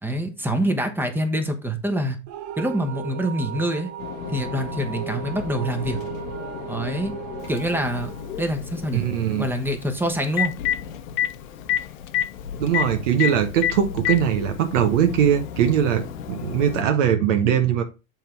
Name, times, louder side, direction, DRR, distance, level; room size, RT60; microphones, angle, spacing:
voice 1, 0.0-2.2 2.6-3.9 4.3-6.0 6.7-7.1 7.5-8.1 8.4-9.0 9.4-10.5, right 1 dB, 5° right, 1.1 m, -25 dB
sound 1, 2.3-9.2, right 10 dB, 40° right, 0.7 m, -36 dB
sound 2, 4.0-16.9, left 8 dB, 85° left, 1.1 m, -37 dB
Telephone, 7.6-7.7 9.8-9.9 10.2-10.8 11.2-11.3 11.7-11.8 12.1-12.2 12.7-12.8 13.2-13.3 13.6-14.2 15.2-15.3 16.7-16.8, left 11 dB, 30° left, 0.4 m, -22 dB
voice 2, 8.9-9.5 12.6-17.8, right 9 dB, 70° right, 1.2 m, -21 dB
7.6 x 3.7 x 4.4 m
hypercardioid pair, 115°, 39 cm